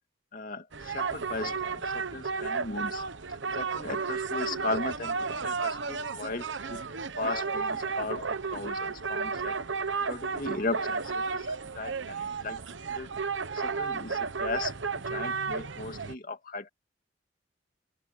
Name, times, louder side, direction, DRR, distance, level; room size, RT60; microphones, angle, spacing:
voice 1, 0.3-3.0 3.5-5.2 5.4-6.8 7.2-9.6 10.1-12.6 12.9-13.1 13.5-14.7 15.1-16.7, left 3 dB, 45° left, 2.4 m, -37 dB
sound 1, 0.7-16.2, right 5 dB, 75° right, 1.0 m, -33 dB
open air
head